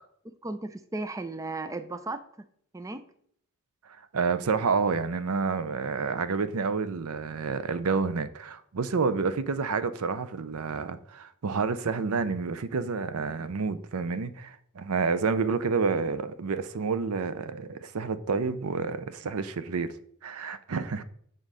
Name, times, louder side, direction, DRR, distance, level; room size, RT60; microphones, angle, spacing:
voice 1, 0.4-2.5 2.7-3.0, right 2 dB, 15° right, 0.4 m, -35 dB
voice 2, 3.9-19.9 20.2-21.0, right 4 dB, 75° right, 0.6 m, -29 dB
7.5 x 3.9 x 6.2 m
head